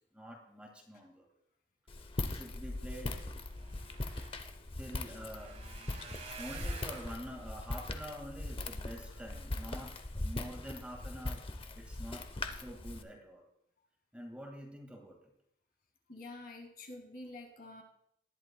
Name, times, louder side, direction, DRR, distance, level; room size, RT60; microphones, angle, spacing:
voice 1, 0.1-1.3 2.2-3.1 4.8-5.9 6.4-11.4 11.7-13.4 14.1-15.2, equal, 5° right, 2 dB, 1.8 m, -47 dB
Walk footsteps, 1.9-13.0, left 2 dB, 30° left, 0.7 m, -40 dB
sound 1, 3.3-9.6 10.1-10.6 11.0-11.2 11.5-11.6, right 4 dB, 35° right, 1.2 m, -52 dB
voice 2, 16.1-17.8, left 2 dB, 55° left, 3 dB, 2.0 m, -48 dB
19.5 x 10.5 x 2.2 m, 0.74 s
head